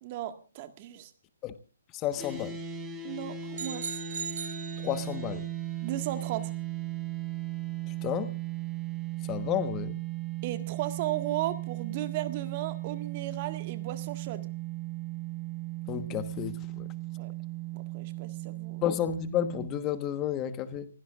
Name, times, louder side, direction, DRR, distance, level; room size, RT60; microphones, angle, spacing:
voice 1, 0.0-1.1 3.0-4.0 5.8-6.5 10.4-14.5 17.2-17.3 17.7-18.8, right 13 dB, 35° right, 8 dB, 1.7 m, -35 dB
voice 2, 1.9-2.6 4.8-5.4 7.9-8.3 9.3-10.0 15.9-16.9 18.8-20.9, left 11 dB, 25° left, 12 dB, 1.2 m, -31 dB
sound 1, 2.2-19.7, right 12 dB, 15° right, 3.4 m, -37 dB
sound 2, 3.5-5.4, right 7 dB, 65° right, 5.2 m, -38 dB
29.0 x 16.0 x 2.5 m, 0.35 s
hypercardioid pair, 145°, 0 cm